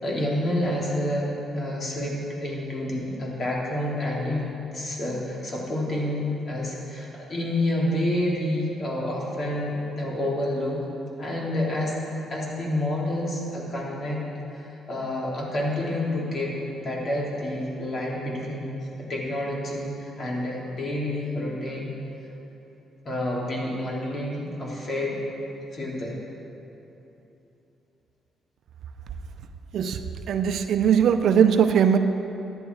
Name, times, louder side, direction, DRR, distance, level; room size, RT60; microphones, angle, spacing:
voice 1, 0.0-4.4 4.7-10.8 11.2-12.0 12.3-14.3 14.5-18.7 19.1-21.9 23.1-25.2 25.7-26.2, left 1 dB, 45° left, -4 dB, 3.4 m, -28 dB
voice 2, 30.3-32.0, right 8 dB, 70° right, 8 dB, 0.7 m, -20 dB
14.0 x 11.0 x 4.8 m, 3.0 s
cardioid pair, 90°, 0 cm